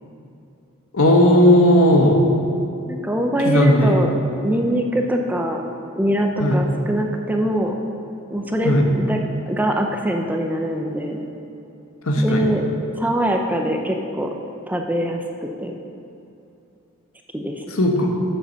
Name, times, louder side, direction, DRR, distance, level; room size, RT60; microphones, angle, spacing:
voice 1, 0.9-2.2 3.4-4.0 6.4-6.6 8.6-8.9 12.1-12.5 17.7-18.2, left 1 dB, 75° left, 2 dB, 1.2 m, -15 dB
voice 2, 2.9-4.1 4.4-5.6 6.0-7.7 8.3-9.2 9.5-11.2 12.2-12.6 12.9-14.3 14.7-15.2 15.6-15.7 17.3-17.6, equal, 10° right, 2 dB, 0.6 m, -22 dB
7.9 x 6.8 x 6.3 m, 2.7 s
head